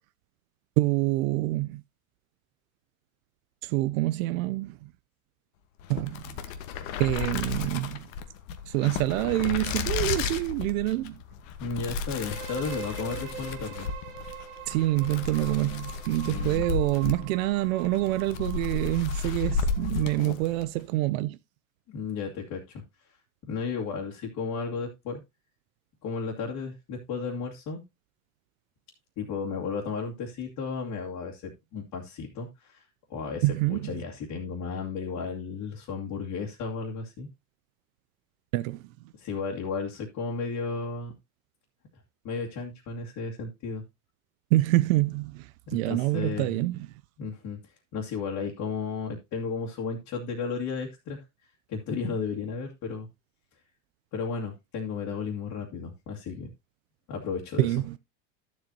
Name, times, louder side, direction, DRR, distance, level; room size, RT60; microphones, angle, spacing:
voice 1, 0.8-1.8 3.6-4.9 5.9-6.4 7.0-8.1 8.7-11.2 14.7-21.4 33.4-33.9 38.5-38.9 44.5-46.9 57.6-58.0, right 18 dB, 80° right, 0.6 m, -26 dB
sound 1, 5.8-20.7, left 5 dB, 70° left, 1.4 m, -33 dB
voice 2, 11.6-13.9 16.2-16.7 21.9-22.8 23.5-25.2 26.0-27.8 29.2-32.8 33.1-37.3 39.2-41.1 42.2-43.8 45.7-46.6 47.2-47.6 47.9-51.2 51.7-53.1 54.1-56.5 57.1-57.7, left 5 dB, 45° left, 2.3 m, -34 dB
sound 2, 12.1-19.9, right 8 dB, 50° right, 1.9 m, -44 dB
12.0 x 7.8 x 2.8 m
supercardioid pair, 135°, 40 cm